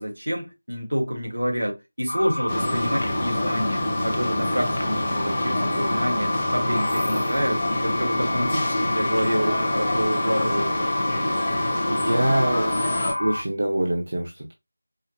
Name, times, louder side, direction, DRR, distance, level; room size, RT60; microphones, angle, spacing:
voice 1, 0.0-10.9, equal, 80° right, 1.5 m, -28 dB
sound 1, 2.1-13.4, left 1 dB, 65° left, 0.8 m, -28 dB
sound 2, 2.5-13.1, left 1 dB, 20° left, 0.8 m, -27 dB
voice 2, 11.9-12.9 13.2-14.5, right 1 dB, 55° right, 0.8 m, -25 dB
4.9 x 2.1 x 2.8 m
figure-of-eight pair, 170°, 0 cm